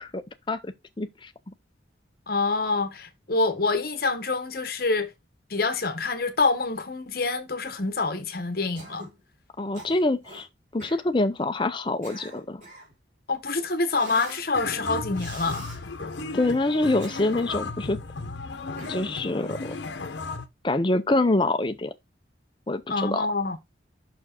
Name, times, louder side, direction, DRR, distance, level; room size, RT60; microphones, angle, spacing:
voice 1, 0.0-1.5 9.6-10.5 10.7-12.6 16.3-18.0 18.9-19.8 20.6-21.9 22.7-23.3, left 2 dB, 25° left, 0.6 m, -26 dB
voice 2, 2.3-5.1 5.5-9.1 13.3-15.8 22.9-23.6, left 3 dB, 55° left, 1.0 m, -26 dB
Cough, 8.8-9.2 9.7-10.4 10.8-11.0 11.8-12.9 13.9-14.5 15.1-15.8 16.8-17.6 18.8-19.3, right 1 dB, 45° right, 3.0 m, -43 dB
sound 1, 14.5-20.5, left 3 dB, 75° left, 0.8 m, -35 dB
6.0 x 4.4 x 4.4 m
head